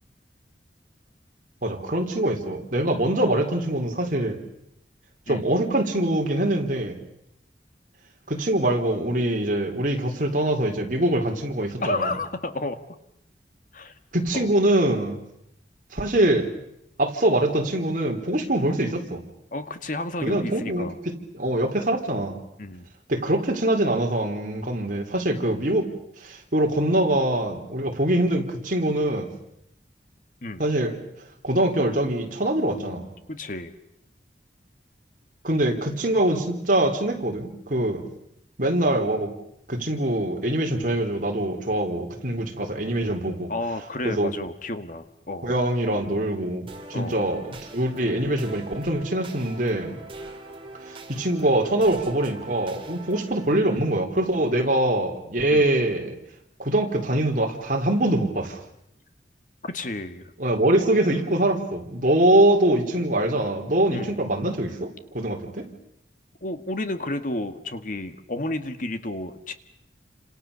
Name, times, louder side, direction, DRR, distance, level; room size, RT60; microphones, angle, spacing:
voice 1, 1.6-4.4 5.3-7.0 8.3-12.1 14.1-15.2 15.9-16.5 17.0-19.2 20.2-22.4 23.1-25.9 26.2-29.3 30.6-31.0 31.4-33.1 35.4-38.1 38.6-39.4 39.7-43.5 44.0-44.3 45.4-50.0 50.8-56.2 56.6-58.6 60.4-65.7, right 1 dB, 50° right, 2 dB, 3.9 m, -23 dB
voice 2, 11.8-12.8 13.7-13.9 14.3-14.5 19.5-20.9 22.6-22.9 30.4-30.6 33.3-33.7 43.5-45.5 46.9-47.2 55.5-55.7 59.6-60.3 63.9-64.2 66.4-69.5, left 2 dB, 50° left, 10 dB, 1.8 m, -31 dB
sound 1, 46.7-53.5, right 2 dB, 30° right, 3.6 m, -42 dB
29.5 x 26.5 x 7.0 m, 0.80 s
head